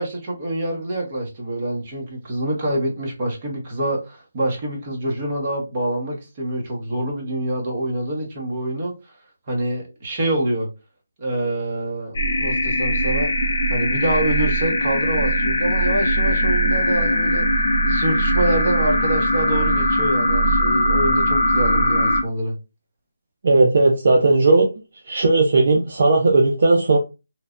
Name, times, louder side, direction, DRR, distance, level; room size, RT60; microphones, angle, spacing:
voice 1, 0.0-8.9 9.5-10.7 11.2-13.3 13.7-17.5 17.8-22.5, right 1 dB, 30° right, 0.9 m, -26 dB
sound 1, 12.1-22.2, equal, 50° left, 1.0 m, -20 dB
voice 2, 23.4-24.7 25.1-27.0, right 2 dB, 55° right, 0.5 m, -16 dB
3.1 x 2.1 x 2.5 m
hypercardioid pair, 165°, 0 cm